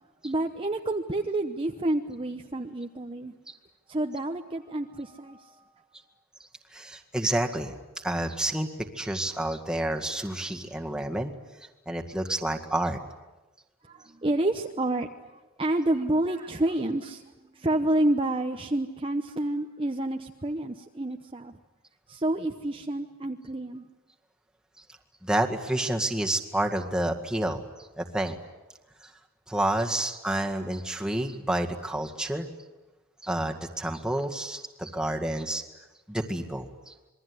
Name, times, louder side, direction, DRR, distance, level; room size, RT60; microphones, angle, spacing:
voice 1, 0.2-3.3 3.9-5.6 13.8-17.2 17.5-21.6 22.1-23.9, right 1 dB, 25° right, 4 dB, 0.9 m, -29 dB
voice 2, 6.7-7.7 8.0-8.7 9.0-11.3 11.9-13.0 25.2-27.6 28.0-28.4 29.5-32.5 33.2-35.6 36.1-36.9, right 1 dB, 5° right, 2 dB, 2.0 m, -29 dB
27.5 x 22.0 x 9.7 m, 1.1 s
head